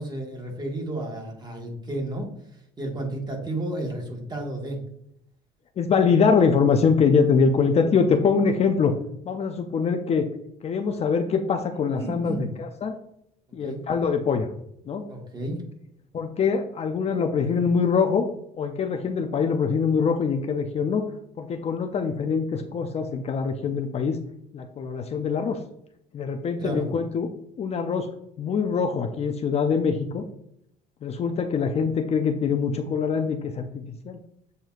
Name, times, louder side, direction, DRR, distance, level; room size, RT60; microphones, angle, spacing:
voice 1, 0.0-4.8 7.6-7.7 12.0-12.5 13.6-13.8 15.1-15.6 17.5-17.6 26.6-26.9, right 1 dB, 25° right, 0 dB, 1.4 m, -32 dB
voice 2, 5.8-8.9 9.3-10.3 10.6-13.0 13.5-14.5 14.9-15.1 16.1-18.3 18.5-21.1 21.4-24.2 24.5-25.6 26.1-27.3 27.6-28.1 28.4-30.2 31.0-34.2, left 5 dB, 40° left, 5 dB, 0.4 m, -23 dB
7.7 x 2.7 x 2.4 m, 0.73 s
cardioid pair, 110°, 17 cm